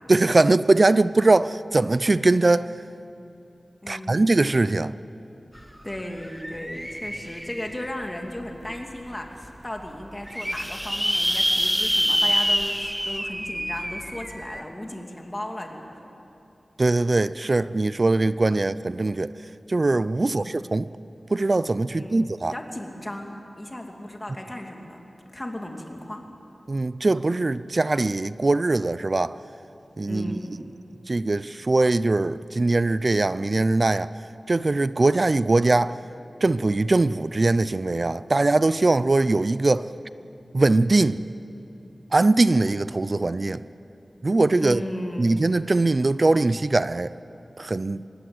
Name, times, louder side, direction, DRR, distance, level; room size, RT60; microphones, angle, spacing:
voice 1, 0.1-2.7 3.9-4.9 16.8-19.3 19.7-20.9 21.3-22.5 26.7-29.3 30.0-30.4 31.1-34.1 34.5-36.0 36.4-39.9 40.5-41.2 42.1-43.6 44.2-44.8 45.2-47.1 47.6-48.0, right 2 dB, 45° right, 0.5 m, -21 dB
voice 2, 3.8-4.2 5.8-16.1 20.2-20.6 21.9-25.0 25.3-26.3 30.1-30.6 44.6-45.3, left 1 dB, 20° left, 2.7 m, -36 dB
sound 1, 5.6-5.7 5.9-8.0 8.6-8.7 9.1-9.2 9.4-9.5 10.0-14.6, equal, ahead, 0.8 m, -26 dB
25.0 x 20.0 x 7.9 m
wide cardioid pair, 90°, 0 cm